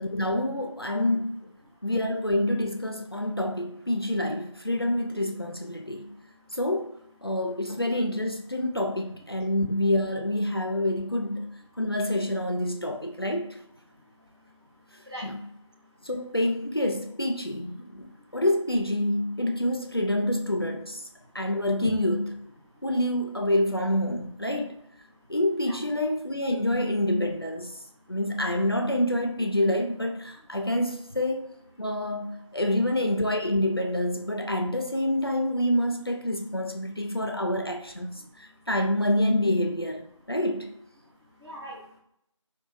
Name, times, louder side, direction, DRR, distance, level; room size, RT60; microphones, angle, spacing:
voice 1, 0.0-1.4 1.8-6.2 6.5-6.9 7.2-11.5 11.8-13.6 15.2-15.4 16.1-21.0 21.3-22.3 22.8-24.7 25.3-27.7 28.1-31.5 31.8-40.8, left 1 dB, 45° left, 0.4 m, -27 dB
voice 2, 5.7-6.6 7.2-7.4 7.7-7.8 13.9-16.1 17.8-18.4 21.1-21.5 21.8-21.9 22.6-22.8 25.1-25.3 25.6-25.8 27.7-28.2 30.3-30.6 36.5-36.6 37.1-37.2 38.1-38.7 41.0-42.0, equal, 55° right, 1.3 m, -46 dB
2.9 x 2.2 x 3.8 m
figure-of-eight pair, 180°, 17 cm